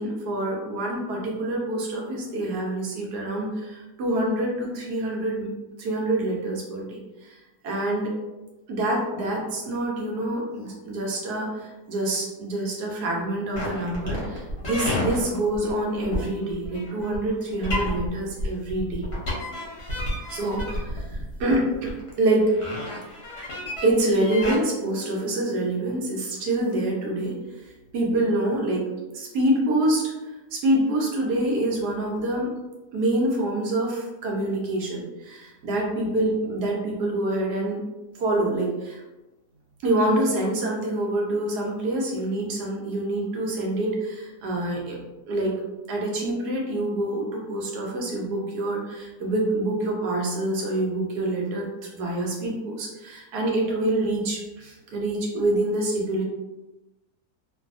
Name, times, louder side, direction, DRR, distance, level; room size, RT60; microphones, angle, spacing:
voice 1, 0.0-5.5 5.8-8.1 8.7-19.1 20.2-21.9 22.2-22.5 23.8-27.4 27.9-28.8 29.1-30.1 30.5-32.5 32.9-37.8 38.2-39.0 39.8-45.0 45.3-45.5 45.9-51.7 51.9-56.2, right 1 dB, 85° right, -2 dB, 1.2 m, -26 dB
sound 1, 13.5-24.6, left 1 dB, 50° left, 0.9 m, -31 dB
2.6 x 2.6 x 2.4 m, 1.1 s
omnidirectional pair, 1.7 m